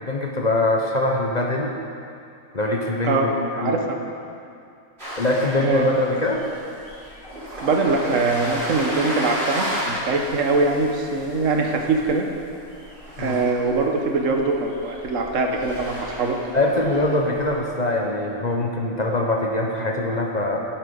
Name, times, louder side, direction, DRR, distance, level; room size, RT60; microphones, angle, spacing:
voice 1, 0.0-1.7 2.5-3.3 3.6-3.9 5.2-6.4 13.2-13.4 16.5-20.7, left 1 dB, 40° left, 0 dB, 0.8 m, -23 dB
voice 2, 3.0-4.0 5.6-5.9 7.6-12.2 13.2-16.4, right 3 dB, 75° right, 3 dB, 1.3 m, -22 dB
sound 1, 5.0-17.6, equal, 50° right, 3.3 m, -34 dB
11.5 x 7.7 x 5.2 m, 2.5 s
omnidirectional pair, 1.4 m